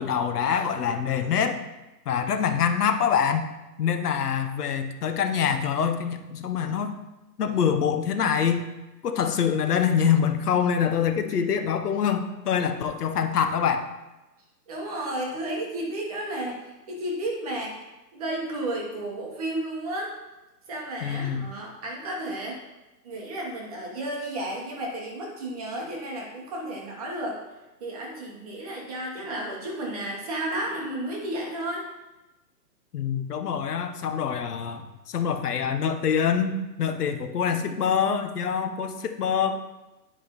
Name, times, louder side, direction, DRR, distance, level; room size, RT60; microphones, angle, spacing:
voice 1, 0.0-1.6 2.1-3.5 3.8-6.9 7.4-8.6 9.0-13.9 21.0-21.4 32.9-39.6, left 7 dB, 65° left, 7 dB, 0.8 m, -25 dB
voice 2, 14.7-17.8 18.1-20.2 20.7-22.6 23.0-27.4 27.8-31.9, right 1 dB, 25° right, -1 dB, 0.9 m, -32 dB
10.0 x 5.2 x 2.9 m, 1.0 s
hypercardioid pair, 160°, 50 cm